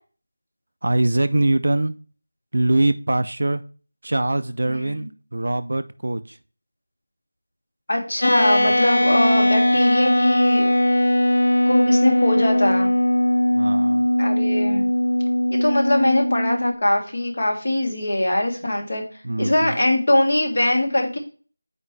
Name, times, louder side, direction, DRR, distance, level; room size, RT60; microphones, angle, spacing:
voice 1, 0.8-2.0 2.5-3.6 4.0-6.4 13.5-14.1 18.3-18.5 19.2-19.8, right 2 dB, 50° right, 0.5 m, -23 dB
voice 2, 4.7-5.1 7.9-10.7 11.7-12.9 14.2-14.9 15.5-19.0 19.4-21.2, left 1 dB, 40° left, 1.7 m, -22 dB
sound 1, 8.2-16.8, left 1 dB, 65° left, 0.4 m, -19 dB
8.7 x 4.7 x 3.3 m
figure-of-eight pair, 180°, 0 cm